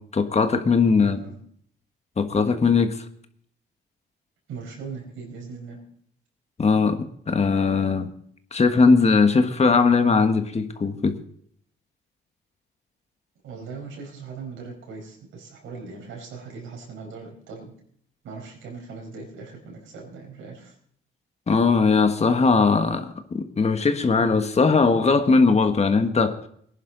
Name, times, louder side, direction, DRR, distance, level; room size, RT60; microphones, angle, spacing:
voice 1, 0.0-1.2 2.2-3.0 6.6-7.0 7.3-8.1 8.5-11.2 21.5-26.4, left 4 dB, 35° left, 8 dB, 1.4 m, -19 dB
voice 2, 1.0-1.3 4.5-5.8 13.4-17.7 18.2-20.7, right 4 dB, 85° right, 0 dB, 5.3 m, -39 dB
19.5 x 11.0 x 4.0 m, 0.64 s
cardioid pair, 90°, 20 cm